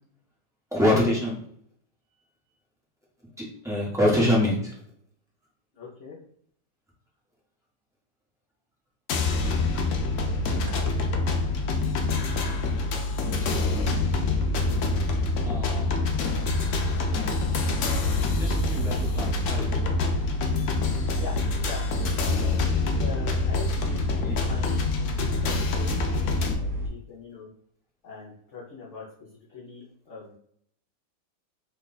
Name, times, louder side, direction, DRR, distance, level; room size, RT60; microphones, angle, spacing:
voice 1, 0.7-1.4 3.4-4.7 13.4-13.7 15.4-16.0 18.3-20.0 24.2-24.4, left 1 dB, 5° right, -6 dB, 0.7 m, -26 dB
voice 2, 5.7-6.2 21.2-21.3 21.6-21.8 23.0-27.5 28.0-30.4, left 4 dB, 55° left, -6 dB, 0.9 m, -42 dB
sound 1, 9.1-26.5, left 4 dB, 80° left, 0.6 m, -27 dB
sound 2, 10.0-26.9, equal, 75° right, 1.1 m, -30 dB
3.0 x 2.3 x 3.9 m, 0.65 s
omnidirectional pair, 1.9 m